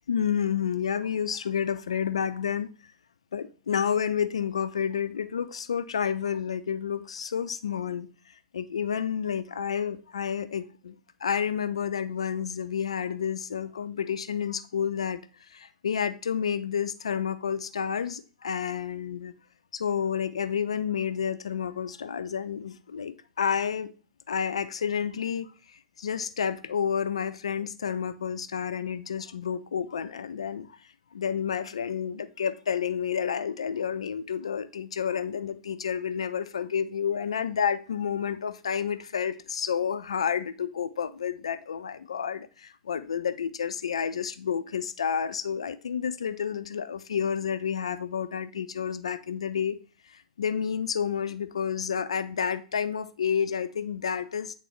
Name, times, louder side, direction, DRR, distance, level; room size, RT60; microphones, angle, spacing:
voice 1, 0.1-2.7 3.3-8.1 8.5-15.2 15.5-19.3 19.7-23.9 24.3-30.7 31.1-49.8 50.4-54.5, left 7 dB, 80° left, 11 dB, 0.5 m, -30 dB
9.2 x 3.7 x 3.2 m, 0.36 s
hypercardioid pair, 100°, 3 cm